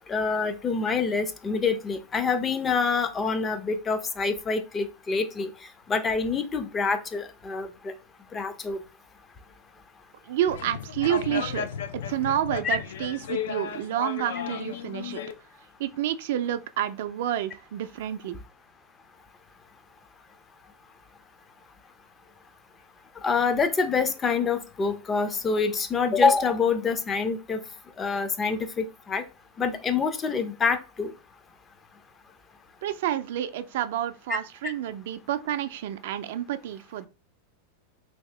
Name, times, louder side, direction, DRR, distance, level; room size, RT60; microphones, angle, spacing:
voice 1, 0.1-5.5 5.9-7.9 8.3-8.8 12.6-12.8 23.2-27.6 28.0-29.2 29.6-31.1 34.3-34.4, left 5 dB, 20° left, 0.4 m, -26 dB
voice 2, 10.2-11.7 12.1-15.2 15.8-18.4 32.8-37.1, right 11 dB, 70° right, 0.4 m, -29 dB
sound 1, 10.4-15.3, left 8 dB, 80° left, 0.4 m, -34 dB
2.9 x 2.7 x 3.2 m
supercardioid pair, 135°, 0 cm